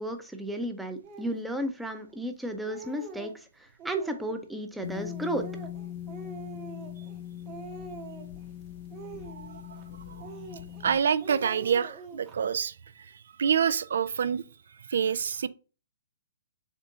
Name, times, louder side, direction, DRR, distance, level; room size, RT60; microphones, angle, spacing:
voice 1, 0.0-3.3 3.6-5.4, right 1 dB, 5° right, 0.6 m, -33 dB
Speech, 1.0-1.4 2.1-2.2 2.5-3.4 3.8-4.4 4.9-7.2 7.5-8.4 8.9-9.8 10.2-10.9 11.2-12.4, right 4 dB, 30° right, 0.9 m, -45 dB
sound 1, 4.8-11.0, left 11 dB, 40° left, 0.4 m, -41 dB
voice 2, 10.8-12.7 13.4-14.4 14.9-15.5, right 7 dB, 70° right, 0.3 m, -27 dB
3.7 x 3.6 x 3.7 m
hypercardioid pair, 130°, 0 cm